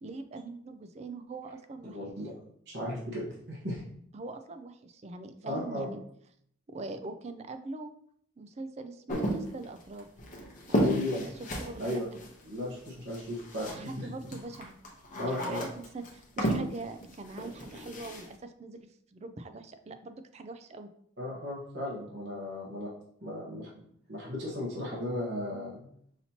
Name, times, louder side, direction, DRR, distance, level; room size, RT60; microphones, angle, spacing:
voice 1, 0.0-2.0 4.1-6.0 6.7-7.9 8.4-10.1 10.7-11.2 11.6-12.0 13.7-14.7 15.3-20.9, right 3 dB, 35° right, 9 dB, 0.3 m, -42 dB
voice 2, 1.9-2.3 2.7-3.8 5.4-5.9 10.7-11.2 11.8-12.1 12.5-14.1 15.2-15.7 21.2-22.9 23.2-23.7 24.1-25.9, left 1 dB, 60° right, -5 dB, 1.2 m, -35 dB
sound 1, 9.1-14.0 14.3-18.3, equal, 40° left, 0.8 m, -33 dB
5.7 x 2.8 x 2.8 m, 0.66 s
head